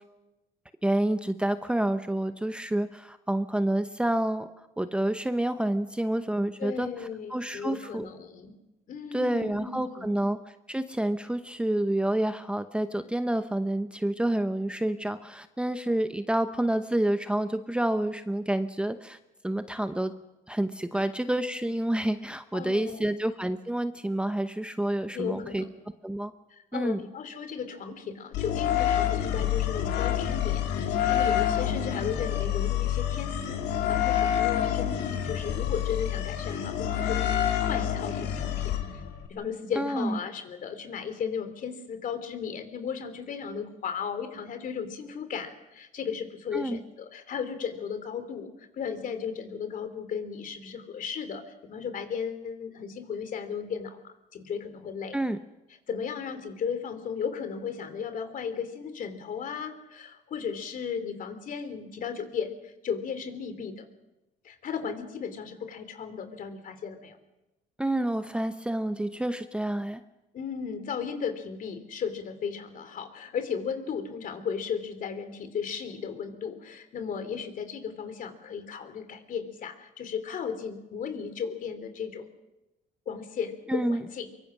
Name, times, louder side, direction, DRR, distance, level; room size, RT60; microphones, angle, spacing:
voice 1, 0.8-4.5 4.8-6.9 7.3-8.1 9.1-10.4 10.7-19.2 19.4-20.1 20.5-25.6 26.0-26.3 26.7-27.0 39.8-40.2 46.5-46.8 55.1-55.4 67.8-70.0 83.7-84.0, right 1 dB, 5° right, 9 dB, 0.9 m, -28 dB
voice 2, 6.6-8.5 8.9-10.1 20.9-21.0 22.5-23.1 25.1-25.7 26.5-37.3 37.7-38.8 39.3-55.2 55.9-63.8 64.4-67.2 70.3-82.3 83.1-84.3, left 6 dB, 55° left, 10 dB, 3.1 m, -35 dB
sound 1, 28.3-39.3, left 10 dB, 85° left, 2.3 m, -27 dB
23.5 x 23.5 x 6.3 m, 0.98 s
cardioid pair, 110°, 17 cm